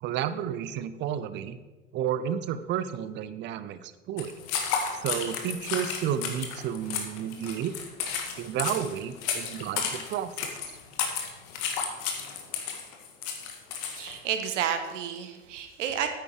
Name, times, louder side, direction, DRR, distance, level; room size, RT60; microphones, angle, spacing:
voice 1, 0.0-1.6 1.9-4.4 5.0-7.7 8.4-10.5, right 9 dB, 30° right, 13 dB, 0.6 m, -31 dB
sound 1, 4.2-14.2, left 7 dB, 50° left, 1.8 m, -33 dB
voice 2, 13.8-16.1, right 9 dB, 65° right, 8 dB, 1.4 m, -31 dB
9.1 x 9.0 x 5.0 m, 1.2 s
hypercardioid pair, 90°, 40 cm